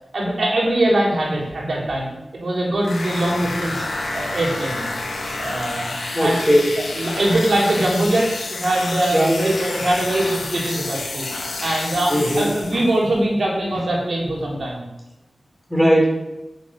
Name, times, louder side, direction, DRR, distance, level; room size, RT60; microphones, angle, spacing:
voice 1, 0.1-3.9 4.1-4.9 5.4-5.9 6.2-6.4 6.8-11.3 11.6-14.8, right 1 dB, 65° right, -2 dB, 4.1 m, -22 dB
sound 1, 2.8-13.0, left 2 dB, 85° left, 2.5 m, -29 dB
voice 2, 6.1-6.7 9.1-9.4 12.1-12.5 15.7-16.2, equal, ahead, -1 dB, 4.2 m, -17 dB
8.6 x 7.6 x 6.7 m, 0.96 s
cardioid pair, 50°, 0 cm